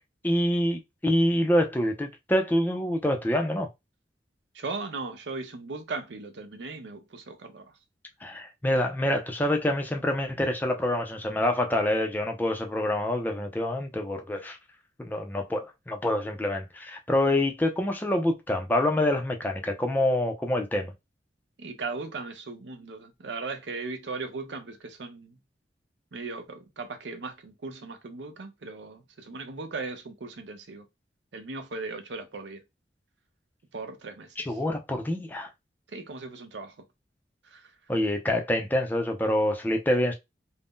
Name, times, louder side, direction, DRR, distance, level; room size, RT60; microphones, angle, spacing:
voice 1, 0.2-3.7 8.2-14.6 15.0-20.9 34.4-35.5 37.9-40.1, left 1 dB, 10° left, 0.4 m, -26 dB
voice 2, 4.5-7.7 21.6-25.4 26.1-30.9 31.3-32.6 33.7-34.6 35.9-36.8 37.4-37.7, right 3 dB, 80° right, 0.6 m, -38 dB
2.6 x 2.0 x 3.5 m
head